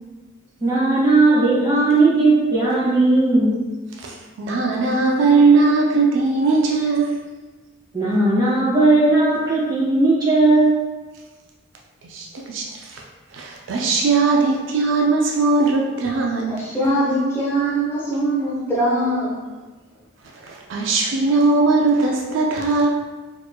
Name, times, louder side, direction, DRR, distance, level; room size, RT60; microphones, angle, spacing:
voice 1, 0.6-3.5 7.9-10.8, right 2 dB, 20° right, -8 dB, 1.4 m, -17 dB
voice 2, 4.0-7.2 12.0-13.0 13.3-16.6 20.3-22.9, right 3 dB, 65° right, -1 dB, 0.4 m, -19 dB
voice 3, 16.5-19.4, right 1 dB, 10° left, -8 dB, 0.7 m, -22 dB
4.4 x 3.0 x 2.2 m, 1.3 s
head